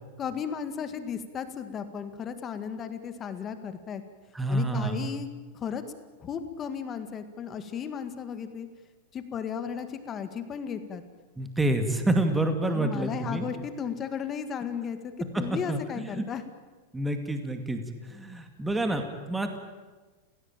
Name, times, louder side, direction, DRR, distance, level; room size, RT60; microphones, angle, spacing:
voice 1, 0.2-4.0 4.5-5.3 5.5-5.8 6.2-8.7 9.1-11.0 12.7-15.1 15.4-16.4, left 7 dB, 25° left, 9 dB, 2.0 m, -35 dB
voice 2, 4.3-5.2 11.4-13.5 15.3-15.4 15.7-16.2 16.9-17.8 18.1-19.6, right 1 dB, 5° right, 6 dB, 2.3 m, -28 dB
30.0 x 17.0 x 9.1 m, 1.3 s
supercardioid pair, 150°, 0 cm